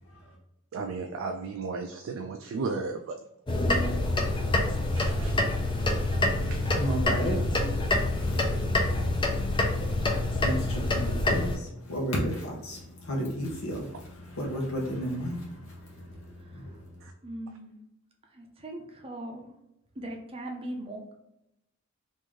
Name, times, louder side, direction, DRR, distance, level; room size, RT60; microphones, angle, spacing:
voice 1, 0.0-0.3 5.7-17.1, equal, 70° left, -2 dB, 0.8 m, -35 dB
voice 2, 0.7-3.2 5.0-5.3 6.5-6.8, right 4 dB, 65° right, 4 dB, 0.3 m, -34 dB
sound 1, 3.5-11.6, left 1 dB, 25° left, 0.5 m, -26 dB
voice 3, 17.2-17.8 18.3-19.5 20.0-21.1, right 1 dB, 25° right, 2 dB, 0.6 m, -39 dB
3.1 x 2.6 x 3.5 m, 0.85 s
head